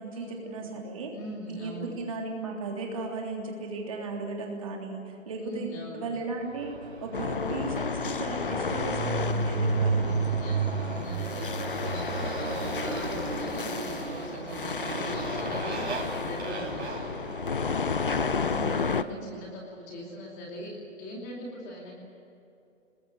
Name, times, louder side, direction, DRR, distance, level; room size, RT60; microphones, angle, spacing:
voice 1, 0.0-1.1 1.5-5.7 5.9-10.1 18.5-19.4, right 3 dB, 25° right, 0 dB, 3.3 m, -36 dB
voice 2, 1.1-1.9 5.4-6.1 10.0-16.9 18.7-21.9, equal, 15° left, -3 dB, 2.7 m, -42 dB
Motorcycle, 6.5-19.2, right 4 dB, 55° right, 3.5 m, -33 dB
sound 1, 7.1-19.0, left 5 dB, 40° left, 0.7 m, -32 dB
24.0 x 21.0 x 8.2 m, 2.8 s
hypercardioid pair, 175°, 40 cm